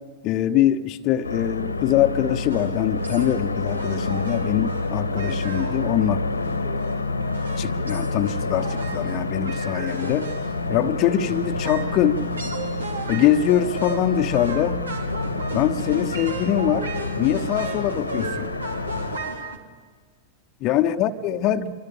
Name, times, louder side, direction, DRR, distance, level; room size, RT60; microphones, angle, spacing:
voice 1, 0.2-6.2 7.6-10.3 10.7-12.2 13.1-14.8 15.5-16.9 17.2-18.5 20.6-21.7, left 11 dB, 40° left, 8 dB, 1.1 m, -23 dB
sound 1, 1.2-19.2, left 3 dB, 80° left, 1.5 m, -28 dB
sound 2, 2.5-19.6, right 3 dB, 75° right, 2.5 m, -35 dB
26.0 x 23.5 x 8.7 m, 1.5 s
figure-of-eight pair, 90°, 0 cm